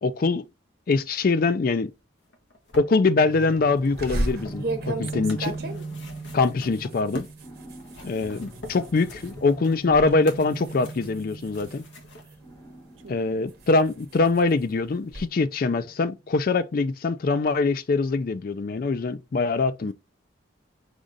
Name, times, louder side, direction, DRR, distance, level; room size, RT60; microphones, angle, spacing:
voice 1, 0.0-0.4 0.9-1.9 2.8-5.5 6.3-7.3 8.0-11.8 13.1-19.9, left 3 dB, 45° left, 0.3 m, -23 dB
sound 1, 2.3-7.4 7.7-12.3 13.1-13.2, left 1 dB, 65° left, 1.0 m, -45 dB
sound 2, 3.2-15.9, right 3 dB, 20° left, 0.9 m, -40 dB
sound 3, 4.0-9.3 9.7-10.1 10.5-12.5 13.1-15.3, right 2 dB, 50° right, 1.0 m, -34 dB
voice 2, 5.5-5.9 8.2-8.5 13.0-13.4 19.8-19.9, right 3 dB, 70° right, 0.7 m, -48 dB
5.0 x 2.5 x 3.8 m
head